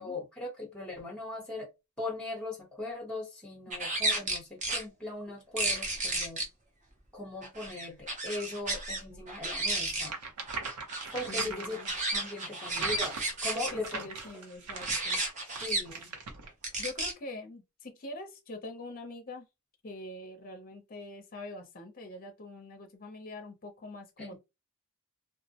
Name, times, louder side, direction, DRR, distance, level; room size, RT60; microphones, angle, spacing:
voice 1, 0.0-1.7 2.0-6.5 7.1-10.2 11.1-11.8 12.1-14.1 15.6-16.1 24.2-24.4, left 2 dB, 5° left, 0.8 m, -39 dB
sound 1, 3.7-4.8 5.6-6.4 7.4-9.0 9.3-10.1 10.5-13.7 14.7-15.8 16.6-17.1, right 2 dB, 35° right, 0.6 m, -32 dB
sound 2, 10.0-16.5, right 4 dB, 90° right, 0.7 m, -40 dB
voice 2, 11.3-11.9 13.7-15.2 16.8-19.4 19.8-24.4, left 2 dB, 40° left, 0.5 m, -44 dB
2.2 x 2.0 x 2.7 m
head